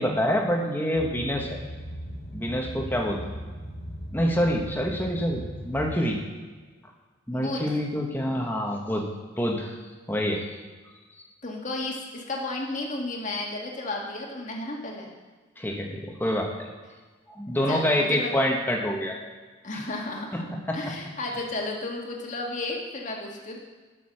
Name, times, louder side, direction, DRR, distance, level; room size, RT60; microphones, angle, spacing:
voice 1, 0.0-1.6 2.3-3.2 4.1-6.2 7.3-9.1 9.4-9.7 10.1-10.4 15.6-16.7 17.3-19.2 20.3-20.9, equal, 10° left, 0 dB, 1.4 m, -26 dB
Boat Water vehicle, 0.9-6.0, equal, 75° left, 2.4 m, -38 dB
voice 2, 7.3-7.7 11.4-15.1 17.7-18.3 19.6-20.4 20.7-23.6, left 2 dB, 40° left, -1 dB, 1.9 m, -33 dB
12.0 x 6.6 x 6.6 m, 1.4 s
head